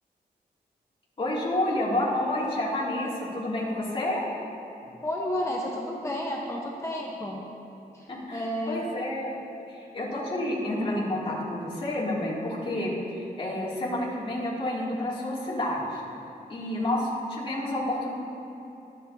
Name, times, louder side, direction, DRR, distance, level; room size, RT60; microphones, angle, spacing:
voice 1, 1.2-4.2 8.1-8.4 8.7-9.4 9.7-16.0 16.5-18.1, left 1 dB, 35° left, -6 dB, 2.7 m, -29 dB
voice 2, 4.9-7.5 7.9-8.9, left 1 dB, 20° left, -2 dB, 1.1 m, -32 dB
24.5 x 8.9 x 2.8 m, 3.0 s
wide cardioid pair, 150°, 17 cm